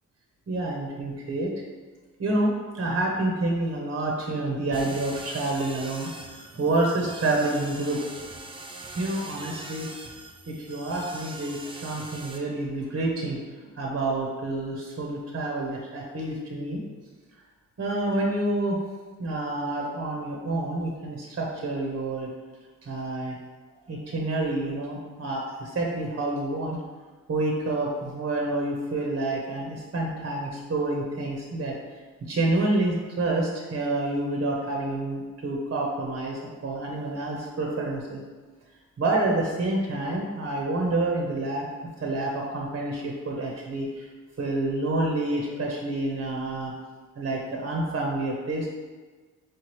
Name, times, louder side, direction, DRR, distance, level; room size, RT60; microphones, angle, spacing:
voice 1, 0.5-1.5 2.2-8.0 9.0-9.9 10.5-13.4 13.6-16.8 17.8-18.8 19.2-22.3 22.8-23.3 23.9-26.8 27.3-31.7 32.3-38.2 39.0-41.6 42.0-44.1 44.4-46.7 47.2-48.7, right 2 dB, 40° right, -1 dB, 0.8 m, -28 dB
sound 1, 4.7-12.4, right 2 dB, 15° right, 0.5 m, -42 dB
4.7 x 3.1 x 3.0 m, 1.4 s
cardioid pair, 70°, 33 cm